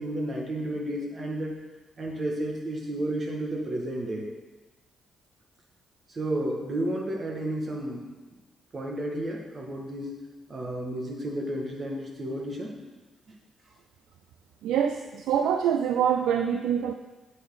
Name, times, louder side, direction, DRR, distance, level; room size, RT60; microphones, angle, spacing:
voice 1, 0.0-1.6 2.0-4.3 6.1-8.0 8.7-10.1 10.5-12.7 13.3-13.4, right 1 dB, 45° right, 0 dB, 2.1 m, -32 dB
voice 2, 14.6-16.9, right 8 dB, 80° right, 6 dB, 0.4 m, -25 dB
8.3 x 7.2 x 4.1 m, 1.2 s
supercardioid pair, 50°, 0 cm